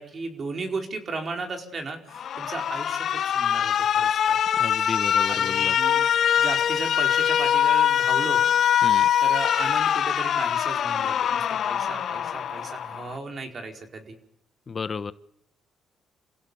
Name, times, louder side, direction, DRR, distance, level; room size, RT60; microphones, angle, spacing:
voice 1, 0.0-4.4 5.3-6.1 6.4-8.4 9.2-14.2, right 3 dB, 45° right, 4 dB, 4.7 m, -35 dB
Alarm, 2.1-13.2, left 9 dB, 65° left, 1.0 m, -23 dB
voice 2, 4.6-5.8 8.8-9.1 14.7-15.1, left 5 dB, 40° left, 13 dB, 1.1 m, -32 dB
27.5 x 16.5 x 7.1 m, 0.72 s
cardioid pair, 90°, 0 cm